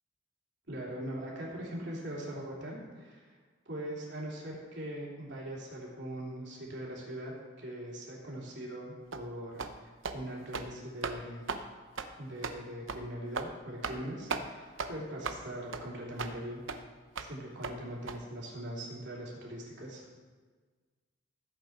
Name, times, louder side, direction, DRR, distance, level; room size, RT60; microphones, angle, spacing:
voice 1, 0.7-3.4 3.6-11.5 12.2-16.6 17.3-20.1, right 1 dB, 60° right, -4 dB, 3.2 m, -41 dB
sound 1, 9.1-9.3 9.6-9.8 10.0-10.2 10.5-10.7 11.0-11.2 11.5-11.6 12.0-12.1 12.4-12.6 12.9-13.0 13.3-13.5 13.8-14.0 14.3-14.4 14.8-14.9 15.2-15.4 15.7-15.8 16.2-16.3 16.7-16.8 17.2-17.3 17.6-17.7 18.1-18.2, right 4 dB, 80° right, 0.8 m, -36 dB
14.5 x 8.1 x 4.5 m, 1.4 s
head